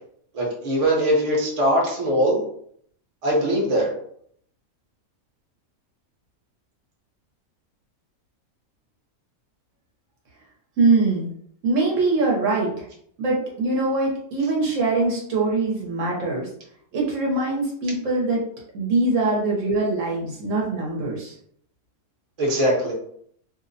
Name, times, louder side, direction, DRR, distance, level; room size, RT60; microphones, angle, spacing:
voice 1, 0.3-2.4 3.2-3.9 22.4-22.9, equal, 35° right, -3 dB, 0.7 m, -21 dB
voice 2, 10.8-11.3 11.6-12.8 13.2-16.5 16.9-18.4 18.7-21.3, right 3 dB, 65° right, -2 dB, 1.0 m, -23 dB
2.6 x 2.0 x 2.5 m, 0.65 s
omnidirectional pair, 1.5 m